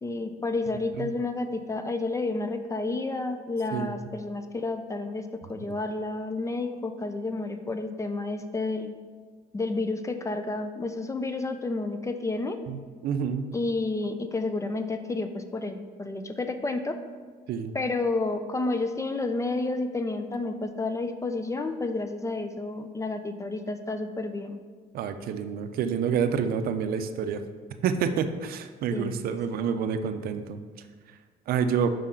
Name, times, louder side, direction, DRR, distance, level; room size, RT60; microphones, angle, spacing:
voice 1, 0.0-8.9 9.5-12.6 13.5-17.0 17.7-24.6 28.9-29.4, left 3 dB, 20° left, 8 dB, 0.3 m, -30 dB
voice 2, 13.0-13.5 17.5-17.7 24.9-27.4 27.8-30.6 31.5-31.9, right 7 dB, 60° right, 9 dB, 0.5 m, -28 dB
5.2 x 3.7 x 5.5 m, 1.6 s
cardioid pair, 110°, 17 cm